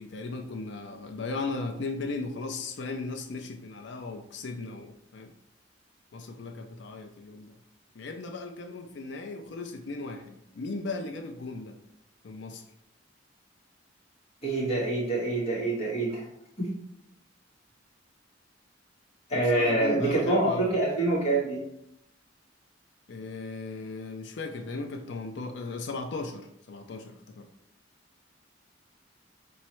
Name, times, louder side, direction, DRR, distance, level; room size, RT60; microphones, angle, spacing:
voice 1, 0.0-5.3 6.1-7.6 8.0-11.8 12.2-12.6 19.3-20.8 23.1-27.5, left 3 dB, 65° left, 5 dB, 0.5 m, -37 dB
voice 2, 14.4-16.2 16.6-16.7 19.3-21.6, right 2 dB, 35° left, -5 dB, 1.7 m, -26 dB
3.5 x 3.1 x 4.4 m, 0.78 s
head